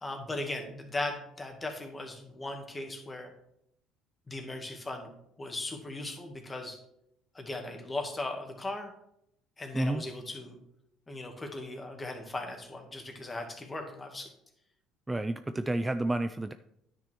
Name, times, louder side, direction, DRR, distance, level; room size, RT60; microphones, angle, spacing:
voice 1, 0.0-3.3 4.3-5.1 5.4-6.8 7.3-8.9 9.6-10.6 11.1-14.3, left 2 dB, 25° left, 4 dB, 2.1 m, -38 dB
voice 2, 15.1-16.5, right 2 dB, 15° right, 11 dB, 0.4 m, -30 dB
10.0 x 6.2 x 4.6 m, 0.78 s
hypercardioid pair, 70°, 0 cm